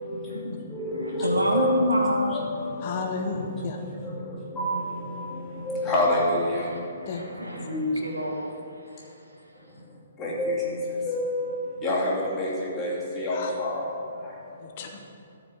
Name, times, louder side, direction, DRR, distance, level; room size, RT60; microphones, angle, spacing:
voice 1, 0.1-0.6 0.9-2.4 6.5-9.1, equal, 80° right, -1 dB, 2.1 m, -28 dB
voice 2, 0.7-1.8 2.3-2.8 4.6-4.8 5.7-6.4 10.2-10.7 11.0-12.1 12.4-12.5 12.8-12.9 13.2-13.8, left 1 dB, 15° left, -6 dB, 2.7 m, -26 dB
voice 3, 2.8-3.8 7.1-7.3 13.3-13.5 14.6-15.0, left 4 dB, 35° left, 3 dB, 0.9 m, -33 dB
13.5 x 5.0 x 7.5 m, 2.6 s
figure-of-eight pair, 125°, 0 cm